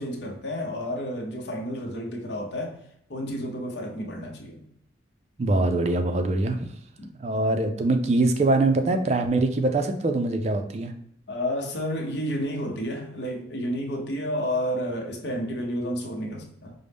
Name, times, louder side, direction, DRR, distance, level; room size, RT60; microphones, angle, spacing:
voice 1, 0.0-2.8 3.1-4.6 7.0-7.1 11.3-16.7, equal, 65° left, 0 dB, 0.7 m, -31 dB
voice 2, 5.4-6.7 7.2-10.9, right 2 dB, 35° right, 6 dB, 0.3 m, -23 dB
5.2 x 2.0 x 3.3 m, 0.72 s
head